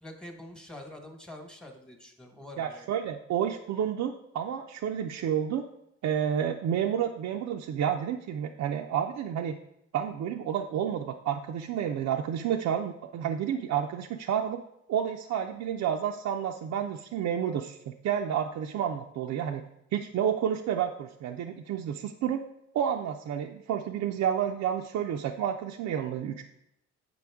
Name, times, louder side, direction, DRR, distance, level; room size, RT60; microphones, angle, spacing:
voice 1, 0.0-2.9, left 1 dB, 5° left, 3 dB, 1.2 m, -46 dB
voice 2, 2.6-5.7 6.0-9.6 9.9-14.6 14.9-19.6 19.9-22.4 22.7-26.4, right 9 dB, 65° right, 3 dB, 0.5 m, -30 dB
7.7 x 5.3 x 3.5 m, 0.80 s
cardioid pair, 90°, 30 cm